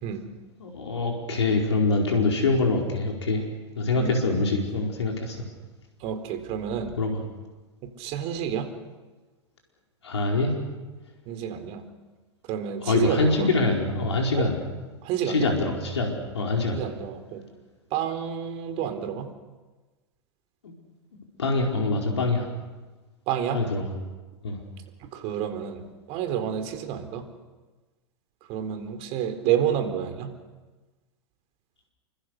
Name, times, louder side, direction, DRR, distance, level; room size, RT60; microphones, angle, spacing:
voice 1, 0.6-3.4 3.8-5.4 7.0-7.2 10.0-10.5 12.8-14.6 15.2-16.9 20.6-20.7 21.4-22.5 23.5-23.9 24.4-24.6, left 3 dB, 80° left, 1 dB, 4.8 m, -24 dB
voice 2, 6.0-7.0 8.0-8.7 11.3-11.8 12.5-13.5 14.3-14.5 15.0-15.5 16.7-17.4 17.9-19.3 23.3-23.6 25.1-25.8 26.1-27.2 28.5-30.3, right 9 dB, 45° right, 8 dB, 4.1 m, -29 dB
29.0 x 25.0 x 6.7 m, 1.2 s
hypercardioid pair, 100°, 14 cm